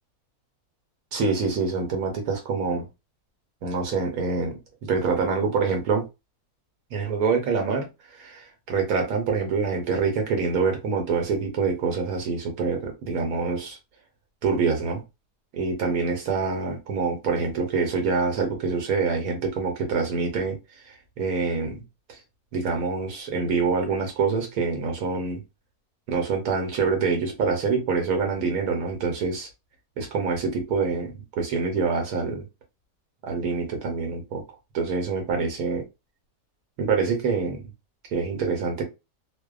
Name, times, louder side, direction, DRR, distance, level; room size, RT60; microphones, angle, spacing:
voice 1, 1.1-2.9 3.6-6.0 6.9-7.9 8.1-13.8 14.4-15.0 15.5-20.6 20.8-21.8 22.1-22.2 22.5-25.4 26.1-29.5 30.0-31.1 31.4-32.4 33.2-34.4 34.7-35.8 36.8-37.7 38.1-38.8, right 4 dB, 75° right, 1.1 m, -26 dB
2.6 x 2.2 x 2.3 m
omnidirectional pair, 1.6 m